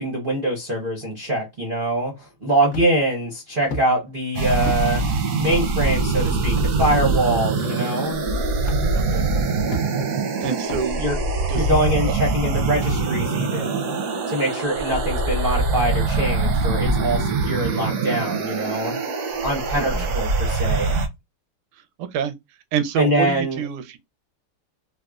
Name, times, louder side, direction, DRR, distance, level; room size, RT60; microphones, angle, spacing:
voice 1, 0.0-5.0 5.4-8.2 11.0-11.2 11.5-14.0 14.3-19.0 19.2-21.0 22.9-23.6, right 1 dB, 50° right, 0.6 m, -24 dB
sound 1, 2.7-3.1 3.7-3.9 4.6-4.8 5.5-5.7 6.5-6.7 7.6-7.7 8.6-8.8 9.7-10.1 10.7-10.9 11.7-11.9, left 1 dB, 55° left, 1.3 m, -31 dB
sound 2, 4.3-21.1, right 3 dB, 70° right, 1.0 m, -23 dB
voice 2, 8.9-9.3 10.4-11.0 11.5-11.7 19.8-20.1 22.0-22.3 22.7-24.0, right 7 dB, 85° right, 1.5 m, -26 dB
4.0 x 2.3 x 2.3 m
omnidirectional pair, 2.4 m